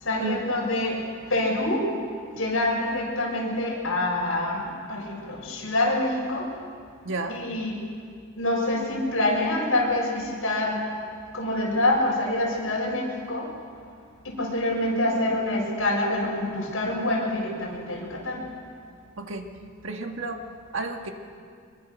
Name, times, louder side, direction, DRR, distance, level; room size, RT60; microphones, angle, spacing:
voice 1, 0.0-1.9 2.3-6.5 7.3-7.8 8.4-10.8 11.3-13.5 14.2-18.5, left 1 dB, 70° left, -4 dB, 6.9 m, -26 dB
voice 2, 7.0-7.4 19.2-19.5 19.8-21.1, right 3 dB, 65° right, 4 dB, 1.9 m, -32 dB
24.0 x 22.0 x 6.5 m, 2.1 s
head